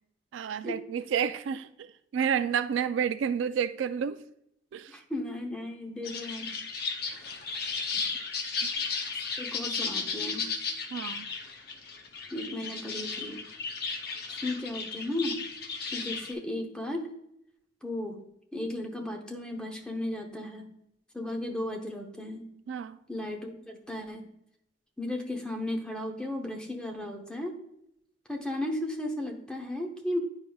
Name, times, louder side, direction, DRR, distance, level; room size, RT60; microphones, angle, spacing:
voice 1, 0.3-4.2 4.7-5.0 10.9-11.3 22.7-23.0, right 7 dB, 75° right, 0.3 m, -30 dB
voice 2, 4.9-6.5 9.1-10.5 12.3-13.4 14.3-15.4 15.9-17.1 17.8-18.2 18.5-20.7 21.1-22.5 23.1-24.3 25.0-27.6 28.3-30.2, left 1 dB, 5° left, 0.8 m, -35 dB
sound 1, 6.0-16.3, left 4 dB, 55° left, 0.7 m, -35 dB
9.5 x 4.9 x 2.3 m
head